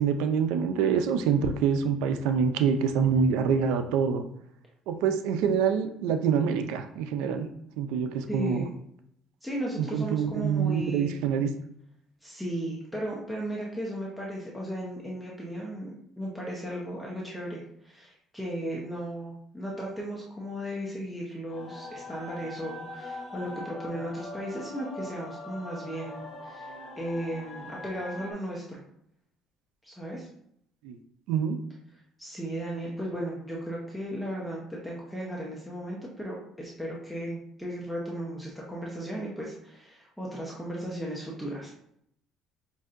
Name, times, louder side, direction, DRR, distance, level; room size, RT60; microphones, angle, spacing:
voice 1, 0.0-4.2 4.9-7.5 7.8-8.7 9.8-11.5 30.8-31.0 31.3-31.6, right 6 dB, 90° right, 8 dB, 0.4 m, -26 dB
voice 2, 8.3-8.7 9.4-11.1 12.2-28.8 29.8-30.3 32.2-41.7, equal, 5° left, -4 dB, 0.7 m, -36 dB
sound 1, 21.5-28.3, left 2 dB, 40° left, 0.9 m, -42 dB
5.3 x 2.6 x 2.5 m, 0.72 s
cardioid pair, 120°, 0 cm